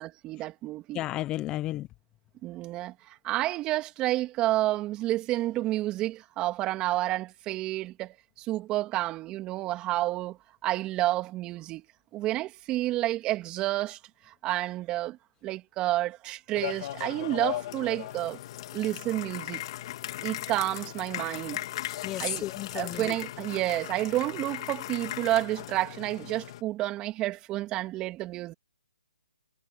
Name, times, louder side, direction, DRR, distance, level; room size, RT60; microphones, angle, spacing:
voice 1, 0.0-1.0 2.4-11.8 12.1-18.4 18.7-19.6 20.2-21.6 22.2-22.4 22.7-28.5, right 16 dB, 20° right, 2.5 m, -30 dB
voice 2, 0.9-1.9 22.0-23.1, left 15 dB, 20° left, 0.9 m, -33 dB
sound 1, 16.5-26.6, left 14 dB, 40° left, 2.6 m, -38 dB
hypercardioid pair, 145°, 4 cm